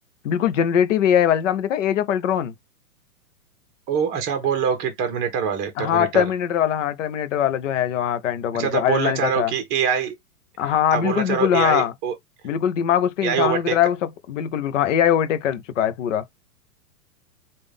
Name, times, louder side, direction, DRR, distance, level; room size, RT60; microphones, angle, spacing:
voice 1, 0.2-2.5 5.8-9.5 10.6-11.9 12.4-16.2, left 9 dB, 50° left, 0.7 m, -21 dB
voice 2, 3.9-6.2 8.6-10.1 10.9-12.1 13.2-13.8, right 7 dB, 20° right, 1.1 m, -24 dB
3.7 x 2.5 x 3.3 m
hypercardioid pair, 165°, 47 cm